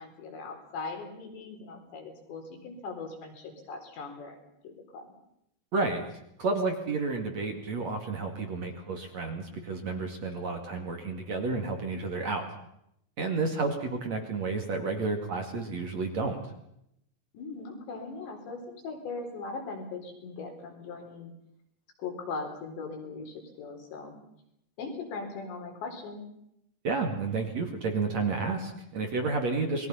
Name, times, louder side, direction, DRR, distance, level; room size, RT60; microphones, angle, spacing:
voice 1, 0.0-4.4 4.6-5.1 13.2-13.6 17.3-21.3 22.0-24.2 24.8-26.2, left 4 dB, 60° left, 3 dB, 6.3 m, -40 dB
voice 2, 5.7-6.0 6.4-12.4 13.2-16.4 26.8-29.9, right 3 dB, 45° right, 4 dB, 2.5 m, -31 dB
29.0 x 22.0 x 5.7 m, 0.77 s
omnidirectional pair, 5.9 m